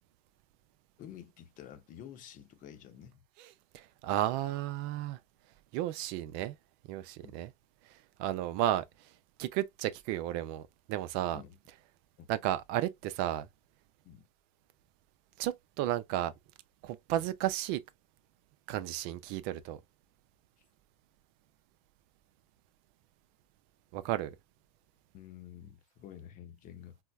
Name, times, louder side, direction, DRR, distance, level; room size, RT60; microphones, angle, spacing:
voice 1, 1.0-3.2 7.2-7.3 11.3-11.6 12.2-12.3 14.0-14.3 17.1-17.2 25.1-27.0, left 10 dB, 45° left, 0.8 m, -50 dB
voice 2, 3.7-5.2 5.7-6.5 6.9-7.5 8.2-8.8 9.4-10.6 10.9-11.4 12.3-13.5 15.4-16.3 16.8-17.8 18.7-19.8 23.9-24.3, right 13 dB, 55° right, 0.5 m, -33 dB
4.3 x 2.0 x 2.3 m
hypercardioid pair, 100°, 20 cm